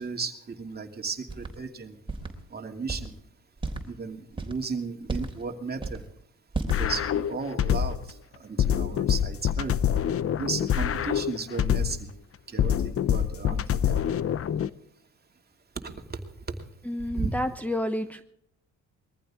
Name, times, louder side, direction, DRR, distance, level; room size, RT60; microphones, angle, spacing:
voice 1, 0.0-2.0 2.5-3.1 3.9-6.0 6.6-8.0 8.4-9.7 10.4-12.1 12.5-14.1 15.8-16.2 17.2-17.3, right 4 dB, 30° right, 3 dB, 2.7 m, -35 dB
sound 1, 1.3-1.5 2.1-2.3 2.9-3.1 3.6-3.9 4.3-4.6 5.1-5.4 5.8-6.0 6.5-6.8, right 3 dB, 15° right, 3.7 m, -32 dB
sound 2, 6.7-8.1 8.6-12.1 12.6-14.7, left 9 dB, 50° left, 0.8 m, -26 dB
voice 2, 16.9-18.2, left 1 dB, 5° left, 5 dB, 1.0 m, -29 dB
22.0 x 15.0 x 3.7 m, 0.71 s
cardioid pair, 90°, 30 cm